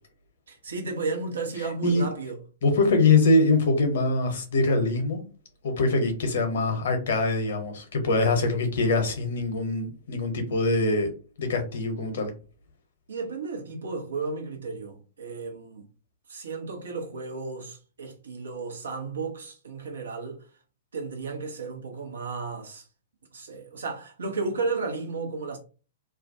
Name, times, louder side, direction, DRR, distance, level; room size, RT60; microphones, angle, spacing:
voice 1, 0.5-2.4 13.1-15.9 16.3-20.4 20.9-22.9 23.3-25.6, right 4 dB, 70° right, 0.8 m, -33 dB
voice 2, 2.6-5.2 5.6-11.1 11.4-12.3, left 3 dB, 60° left, 0.8 m, -23 dB
2.4 x 2.2 x 2.6 m
figure-of-eight pair, 105°, 0 cm